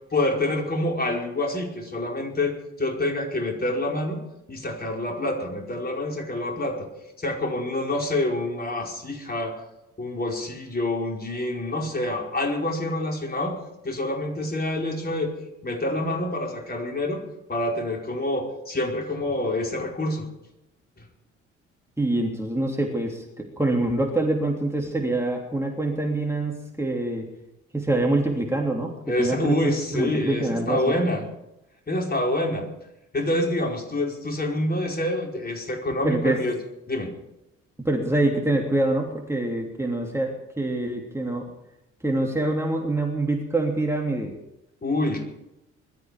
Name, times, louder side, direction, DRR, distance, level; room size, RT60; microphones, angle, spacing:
voice 1, 0.1-4.2 4.5-6.9 7.2-9.5 10.0-13.6 13.8-15.3 15.6-17.2 17.5-20.2 29.1-31.2 31.9-32.7 33.1-36.6 36.9-37.1 44.8-45.3, left 1 dB, 25° left, 1 dB, 4.8 m, -27 dB
voice 2, 22.0-27.3 27.7-29.6 29.9-31.0 36.0-36.4 37.8-41.5 42.0-44.3, right 2 dB, 5° right, 0 dB, 3.1 m, -25 dB
21.5 x 13.0 x 5.1 m, 0.88 s
figure-of-eight pair, 45°, 36 cm